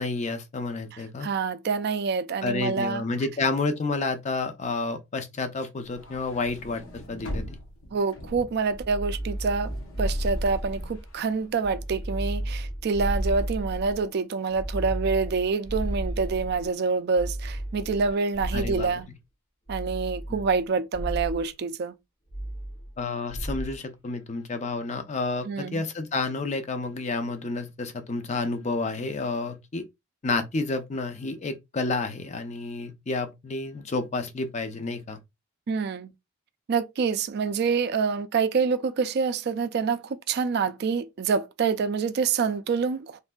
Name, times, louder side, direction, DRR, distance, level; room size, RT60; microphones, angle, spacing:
voice 1, 0.0-1.3 2.4-7.6 18.5-18.9 20.3-20.4 23.0-29.8 30.2-35.2, left 3 dB, 30° left, 0.4 m, -30 dB
voice 2, 1.2-3.0 7.9-19.1 19.7-21.9 25.5-25.8 35.7-36.1 36.7-43.2, right 5 dB, 50° right, 0.3 m, -27 dB
sound 1, 5.8-12.2, equal, 65° left, 0.8 m, -42 dB
sound 2, 8.7-11.1 11.6-14.0 14.5-16.7 17.1-19.0 19.7-20.6 20.9-21.4 22.3-23.0 23.3-23.8, right 1 dB, 85° left, 1.5 m, -32 dB
3.2 x 2.6 x 2.2 m
head